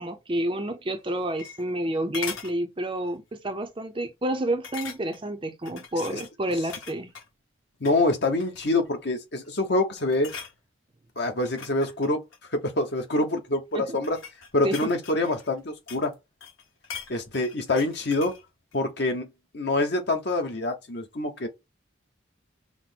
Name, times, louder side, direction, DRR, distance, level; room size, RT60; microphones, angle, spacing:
voice 1, 0.0-7.1 13.7-14.0 14.6-14.9, right 1 dB, 25° right, 0.5 m, -29 dB
sound 1, 1.0-1.9 2.1-2.6 3.1-3.3 3.6-3.7 4.6-5.3 5.7-7.3 7.7-8.0 8.4-8.9 9.4-9.7 10.0-10.6 11.3-12.9 13.7-16.1 16.4-18.4 18.7-18.8, left 7 dB, 85° left, 1.3 m, -41 dB
voice 2, 7.8-10.3 11.2-12.2 12.5-14.2 14.5-16.1 17.1-18.3 18.7-19.3 19.5-21.5, left 2 dB, 55° left, 1.0 m, -26 dB
5.7 x 2.1 x 4.4 m
head